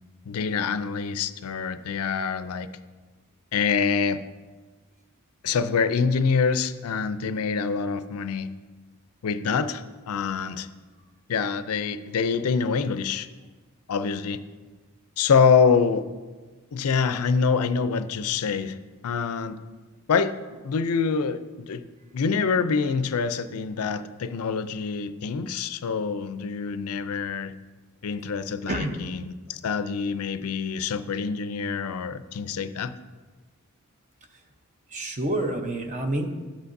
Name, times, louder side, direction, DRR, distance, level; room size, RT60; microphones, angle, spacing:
voice 1, 0.3-2.7 3.5-4.2 5.4-8.5 9.2-10.7 11.3-13.3 13.9-14.4 15.2-16.1 16.7-18.8 19.0-19.6 20.1-20.3 20.6-21.8 22.1-27.5 28.0-32.9, left 5 dB, 80° left, 12 dB, 0.4 m, -25 dB
voice 2, 34.9-36.3, right 1 dB, 35° right, 5 dB, 0.8 m, -28 dB
11.5 x 8.4 x 2.6 m, 1.3 s
head